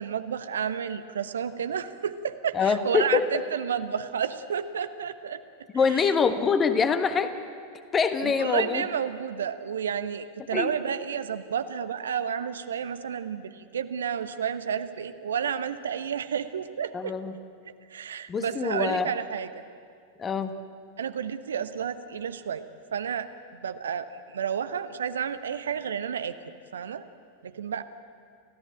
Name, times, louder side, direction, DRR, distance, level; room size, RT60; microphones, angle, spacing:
voice 1, 0.0-5.4 5.9-6.1 8.2-17.1 17.9-19.6 21.0-22.6 22.9-26.4 26.7-27.0 27.4-27.8, right 7 dB, 65° right, 11 dB, 0.9 m, -31 dB
voice 2, 2.5-3.2 5.7-7.3 7.9-8.8 10.5-10.7 16.9-17.3 18.3-19.1 20.2-20.5, left 5 dB, 20° left, 9 dB, 1.5 m, -24 dB
30.0 x 14.5 x 8.9 m, 2.2 s
figure-of-eight pair, 90°, 0 cm